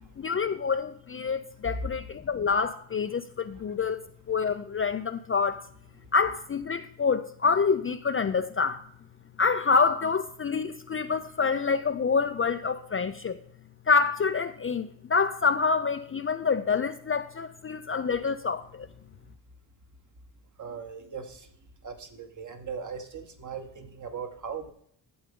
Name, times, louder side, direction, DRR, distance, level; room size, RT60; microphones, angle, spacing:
voice 1, 0.2-5.6 6.1-8.8 9.4-13.4 13.9-18.9, left 5 dB, 30° left, 0.4 m, -27 dB
voice 2, 20.6-21.5 21.8-24.7, right 6 dB, 40° right, 1.5 m, -39 dB
12.5 x 8.0 x 3.7 m
cardioid pair, 125°, 46 cm